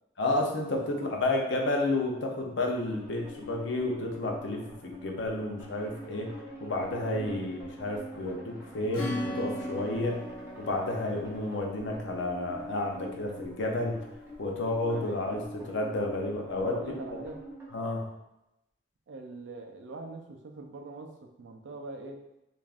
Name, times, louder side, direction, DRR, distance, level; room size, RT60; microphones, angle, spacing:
voice 1, 0.2-6.3 6.6-10.2 10.6-14.0 14.4-16.8 17.7-18.0, left 2 dB, 85° left, 1 dB, 0.5 m, -31 dB
voice 2, 0.7-1.1 7.2-7.4 11.1-11.3 14.9-15.3 16.7-17.4 19.1-22.2, right 3 dB, 85° right, 3 dB, 0.4 m, -43 dB
sound 1, 2.8-17.7, equal, 15° right, 0.6 m, -45 dB
Acoustic guitar / Strum, 8.9-13.2, left 1 dB, 25° left, 0.6 m, -39 dB
3.3 x 2.5 x 2.4 m, 0.89 s
head